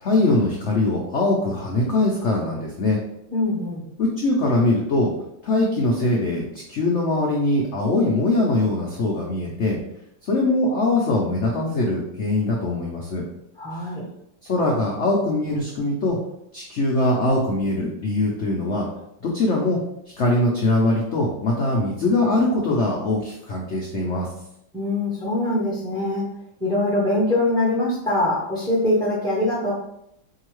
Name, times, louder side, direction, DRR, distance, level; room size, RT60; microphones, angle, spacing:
voice 1, 0.0-3.0 4.0-5.1 5.4-6.4 6.7-9.8 10.2-13.2 14.4-16.2 16.5-18.9 19.2-19.8 20.2-24.3, left 2 dB, 80° left, -2 dB, 0.6 m, -22 dB
voice 2, 3.3-3.9 13.6-14.0 24.7-26.3 26.6-29.7, left 1 dB, 5° left, -6 dB, 0.5 m, -23 dB
4.6 x 2.8 x 3.0 m, 0.78 s
omnidirectional pair, 2.1 m